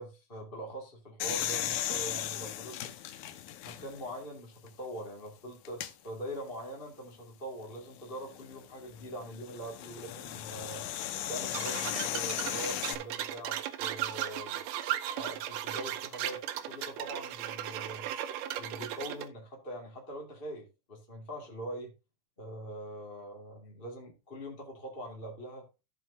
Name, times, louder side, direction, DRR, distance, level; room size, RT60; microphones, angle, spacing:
voice 1, 0.0-2.9 3.6-10.8 11.3-14.6 15.1-18.1 18.6-21.9 22.4-25.7, right 1 dB, 20° left, -2 dB, 2.0 m, -43 dB
sound 1, 1.2-4.1 4.7-4.8 5.7-5.9 8.1-13.0, left 12 dB, 90° left, 2.6 m, -36 dB
sound 2, 11.5-19.3, right 12 dB, 80° right, 2.2 m, -36 dB
15.5 x 5.7 x 2.8 m, 0.27 s
omnidirectional pair, 4.0 m